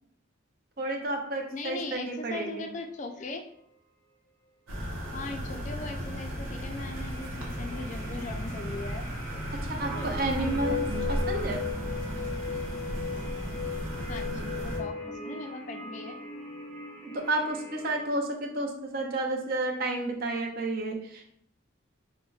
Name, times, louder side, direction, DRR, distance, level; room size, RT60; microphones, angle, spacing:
voice 1, 0.8-2.6 9.5-11.6 17.1-21.3, right 2 dB, 45° right, 2 dB, 0.5 m, -31 dB
sound 1, 1.3-1.9 6.2-18.0, left 4 dB, 5° left, 0.8 m, -38 dB
voice 2, 1.5-3.5 5.1-9.0 9.3-9.4 9.8-10.1 10.4-11.3 14.1-16.2, left 3 dB, 35° left, 5 dB, 0.3 m, -39 dB
sound 2, 4.7-14.8, equal, 80° right, 0.8 m, -35 dB
5.2 x 2.1 x 2.3 m, 0.69 s
head